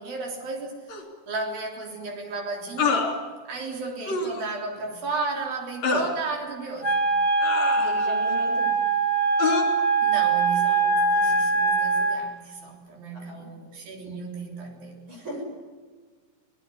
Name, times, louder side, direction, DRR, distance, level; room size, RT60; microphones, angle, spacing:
voice 1, 0.0-7.1 10.0-15.3, right 3 dB, 90° right, 1 dB, 5.5 m, -34 dB
More groans and screams, 0.9-1.0 2.8-3.1 4.1-4.4 5.8-6.1 7.4-8.2 9.4-9.6, left 4 dB, 50° left, 4.6 m, -26 dB
Wind instrument woodwind instrument, 6.8-12.2, right 4 dB, 15° left, 3.4 m, -22 dB
voice 2, 7.7-8.8 13.1-13.5 15.1-15.4, right 1 dB, 35° right, 1 dB, 7.3 m, -38 dB
24.5 x 18.5 x 9.9 m, 1.5 s
omnidirectional pair, 4.0 m